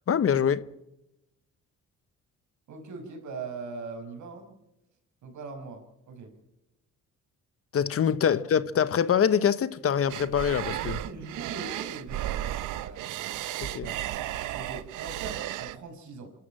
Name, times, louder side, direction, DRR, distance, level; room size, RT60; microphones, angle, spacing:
voice 1, 0.1-0.7 7.7-11.0 13.6-13.9, left 8 dB, 50° left, 0.9 m, -24 dB
voice 2, 2.7-4.5 5.2-6.3 8.3-8.4 10.7-14.0 14.5-16.3, right 4 dB, 70° right, 5.6 m, -41 dB
sound 1, 10.1-15.8, right 14 dB, 90° right, 0.8 m, -34 dB
27.0 x 13.0 x 7.6 m
cardioid pair, 90°, 30 cm